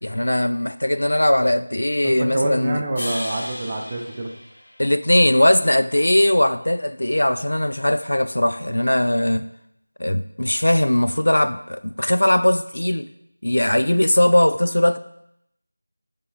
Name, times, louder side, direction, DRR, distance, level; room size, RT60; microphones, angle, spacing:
voice 1, 0.0-2.8 4.8-9.5 10.0-13.1 13.4-15.0, left 1 dB, 80° left, 0.3 m, -19 dB
voice 2, 2.0-4.3, right 1 dB, 25° right, 0.6 m, -26 dB
sound 1, 3.0-5.3, left 1 dB, 55° left, 1.1 m, -35 dB
6.4 x 3.7 x 4.2 m
figure-of-eight pair, 175°, 0 cm